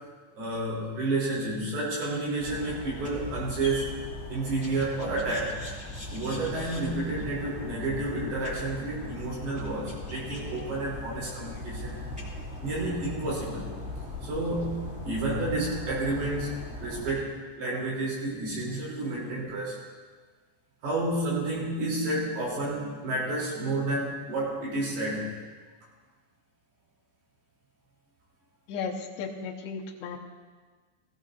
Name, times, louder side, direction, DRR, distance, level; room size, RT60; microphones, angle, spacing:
voice 1, 0.4-3.9 4.3-5.6 6.1-12.1 12.6-13.7 14.2-16.5 16.8-19.8 20.8-25.3, right 2 dB, 55° right, -5 dB, 5.2 m, -30 dB
sound 1, 2.4-17.1, left 1 dB, 5° right, 0.6 m, -39 dB
voice 2, 28.7-30.2, left 5 dB, 75° left, -3 dB, 3.0 m, -35 dB
17.5 x 15.5 x 2.7 m, 1.5 s
omnidirectional pair, 5.7 m